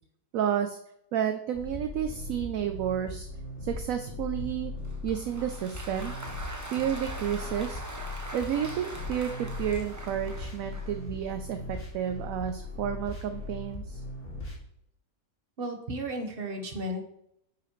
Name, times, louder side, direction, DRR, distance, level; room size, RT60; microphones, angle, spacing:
voice 1, 0.3-0.8 1.1-3.3 3.6-4.7 5.0-6.1 6.7-7.8 8.3-14.0, right 9 dB, 70° right, 7 dB, 0.9 m, -31 dB
sound 1, 1.5-14.6, left 2 dB, 40° left, 2.5 m, -39 dB
Applause, 4.9-11.0, right 1 dB, 15° right, 0.7 m, -42 dB
voice 2, 15.6-17.0, right 1 dB, 40° right, 4 dB, 1.3 m, -34 dB
9.1 x 5.7 x 3.1 m, 0.76 s
omnidirectional pair, 1.6 m